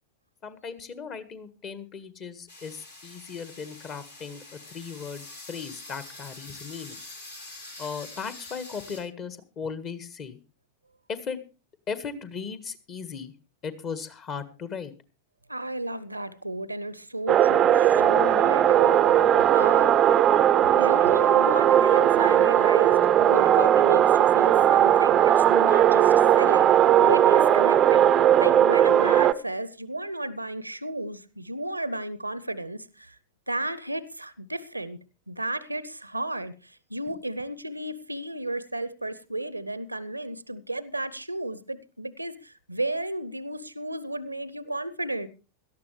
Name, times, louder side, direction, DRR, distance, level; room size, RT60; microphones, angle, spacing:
voice 1, 0.4-7.0 7.8-10.4 11.1-11.4 11.9-13.3 13.6-14.9, left 6 dB, 30° left, 1.5 m, -37 dB
sound 1, 2.5-9.0, left 2 dB, 75° left, 4.0 m, -45 dB
voice 2, 15.5-20.0 20.7-28.1 28.4-33.2 33.5-35.0 35.3-45.3, right 1 dB, 85° right, 0.7 m, -33 dB
sound 2, 17.3-29.3, right 10 dB, 30° right, 0.6 m, -18 dB
17.5 x 13.0 x 3.2 m
figure-of-eight pair, 90°, 0 cm